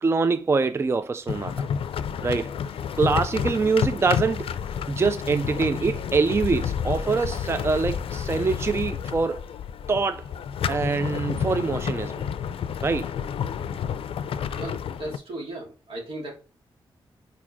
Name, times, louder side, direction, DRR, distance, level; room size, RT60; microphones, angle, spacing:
voice 1, 0.0-1.7 2.2-2.5 3.0-4.5 4.9-9.4 9.9-10.3 10.7-12.3 12.8-13.1, right 4 dB, 30° right, 0.4 m, -24 dB
sound 1, 1.3-15.2, left 7 dB, 80° left, 0.4 m, -30 dB
voice 2, 14.5-16.4, right 1 dB, 80° right, 2.6 m, -36 dB
4.8 x 4.5 x 4.3 m
wide cardioid pair, 95°, 9 cm